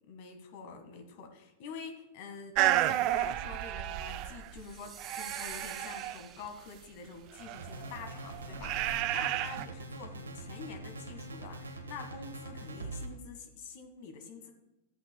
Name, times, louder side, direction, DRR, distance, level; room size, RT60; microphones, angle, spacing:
voice 1, 0.1-14.5, left 5 dB, 55° left, 6 dB, 1.7 m, -47 dB
sound 1, 2.6-4.7 5.0-6.2 7.4-9.7, right 13 dB, 45° right, 0.4 m, -32 dB
sound 2, 4.5-7.0, right 6 dB, 25° right, 1.0 m, -47 dB
sound 3, 7.5-13.1, right 2 dB, 85° right, 1.2 m, -43 dB
13.5 x 8.2 x 2.3 m, 0.95 s
hypercardioid pair, 105°, 0 cm